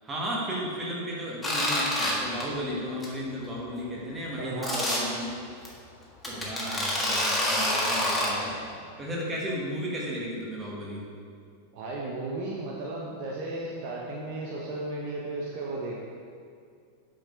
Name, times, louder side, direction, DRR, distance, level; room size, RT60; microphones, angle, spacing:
voice 1, 0.0-5.6 6.3-8.6 9.0-11.0, equal, 15° right, -4 dB, 1.8 m, -34 dB
sound 1, 1.4-2.1 2.4-2.7 3.0-3.1 3.4-3.5 4.6-5.0 5.6-5.7 6.2-8.3, left 1 dB, 5° left, 1.6 m, -27 dB
voice 2, 4.4-5.1 11.7-16.0, right 2 dB, 45° right, -3 dB, 0.9 m, -34 dB
8.7 x 5.1 x 4.0 m, 2.3 s
figure-of-eight pair, 90°, 0 cm